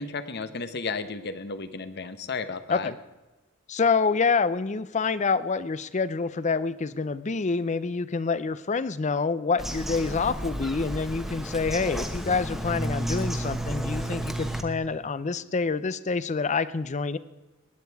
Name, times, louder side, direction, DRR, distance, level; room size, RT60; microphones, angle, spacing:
voice 1, 0.0-2.9, left 4 dB, 55° left, 12 dB, 0.9 m, -33 dB
voice 2, 3.7-17.2, left 4 dB, 35° left, 16 dB, 0.5 m, -27 dB
Bird vocalization bird call bird song, 9.6-14.6, equal, ahead, 1.1 m, -32 dB
19.5 x 9.1 x 4.7 m, 1.1 s
head